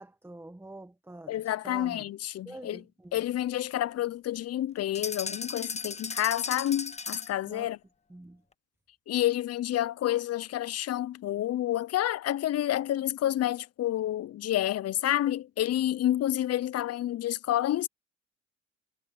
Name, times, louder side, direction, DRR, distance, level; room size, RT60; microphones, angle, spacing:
voice 1, 0.0-2.1 2.4-3.2 7.4-7.7 8.1-8.4, right 2 dB, 10° right, 1.4 m, -46 dB
voice 2, 1.3-2.8 3.1-7.8 9.1-17.9, left 13 dB, 55° left, 0.5 m, -29 dB
sound 1, 4.9-7.4, left 4 dB, 20° left, 1.0 m, -36 dB
cardioid pair, 90°, 30 cm